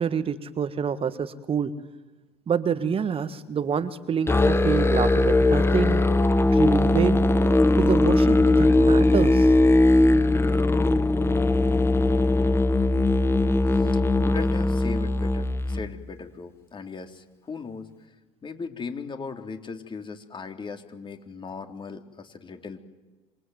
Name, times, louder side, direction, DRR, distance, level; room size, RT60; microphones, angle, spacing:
voice 1, 0.0-1.8 2.5-6.0 6.4-7.2 7.8-9.5, right 7 dB, 35° right, 12 dB, 1.6 m, -27 dB
Musical instrument, 4.3-15.9, left 2 dB, 15° left, 1.6 m, -20 dB
voice 2, 13.7-17.9 18.4-22.8, left 5 dB, 30° left, 6 dB, 3.6 m, -38 dB
27.0 x 23.5 x 9.5 m, 1.2 s
hypercardioid pair, 70°, 16 cm